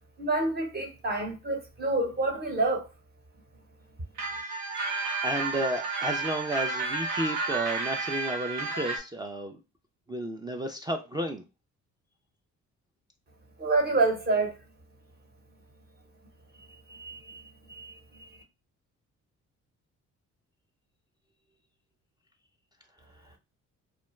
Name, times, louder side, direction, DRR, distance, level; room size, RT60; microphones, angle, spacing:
voice 1, 0.2-2.8 13.6-14.5 16.9-17.4 17.7-17.9 18.2-18.3, right 2 dB, 30° right, 0.9 m, -28 dB
sound 1, 4.2-9.0, right 3 dB, 75° right, 0.8 m, -31 dB
voice 2, 4.5-9.5 10.1-11.4 23.2-23.3, right 1 dB, 15° right, 0.3 m, -33 dB
2.4 x 2.1 x 3.0 m
cardioid pair, 90°, 30 cm